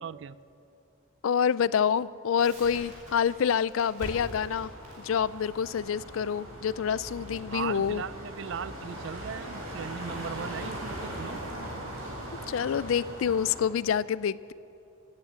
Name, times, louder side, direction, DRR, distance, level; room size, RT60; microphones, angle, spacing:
voice 1, 0.0-0.4 7.5-11.4, right 7 dB, 55° right, 18 dB, 0.3 m, -38 dB
voice 2, 1.2-4.7 5.0-8.0 12.5-14.5, left 7 dB, 70° left, 19 dB, 0.4 m, -27 dB
Crackle, 2.4-9.2, equal, 35° right, 4.3 m, -46 dB
sound 1, 4.2-13.6, right 1 dB, 80° right, 4.1 m, -40 dB
17.0 x 9.7 x 8.0 m, 2.7 s
head